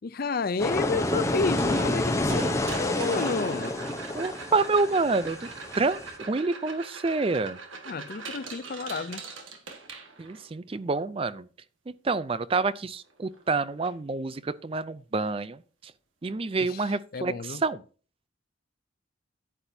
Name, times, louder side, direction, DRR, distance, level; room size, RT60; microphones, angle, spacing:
voice 1, 0.0-3.7 7.9-9.3 16.7-16.8 17.1-17.6, left 4 dB, 45° left, 0.4 m, -31 dB
sound 1, 0.6-6.1, left 1 dB, 15° left, 0.8 m, -29 dB
sound 2, 1.6-3.4 4.1-4.2 4.7-4.9, right 1 dB, 50° right, 3.9 m, -36 dB
sound 3, 2.5-10.5 12.8-12.9 13.1-13.4 13.8-13.9 14.5-14.6 16.5-16.6, right 4 dB, 75° right, 1.7 m, -42 dB
voice 2, 4.1-5.5 5.7-7.6 10.2-11.5 12.0-15.9 16.2-17.8, right 3 dB, 25° right, 0.4 m, -28 dB
9.9 x 9.7 x 2.7 m
head